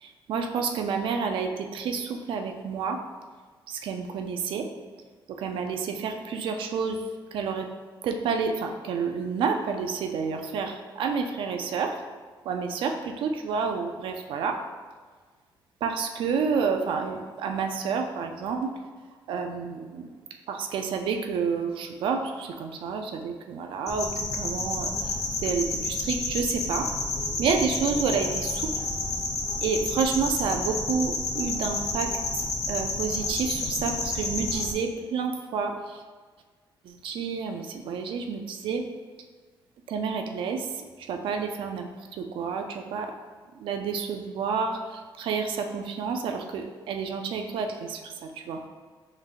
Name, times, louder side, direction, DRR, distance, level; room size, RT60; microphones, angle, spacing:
voice 1, 0.0-3.0 3.7-4.7 5.4-7.0 7.3-7.7 8.0-12.0 12.5-14.6 15.8-18.7 19.3-20.1 20.5-26.9 27.4-28.7 29.6-36.0 36.8-38.8 39.9-40.7 41.0-43.1 43.6-48.7, right 5 dB, 75° right, 5 dB, 0.4 m, -29 dB
sound 1, 23.9-34.7, left 3 dB, 35° left, 0.7 m, -30 dB
5.6 x 3.2 x 2.4 m, 1.5 s
cardioid pair, 155°, 9 cm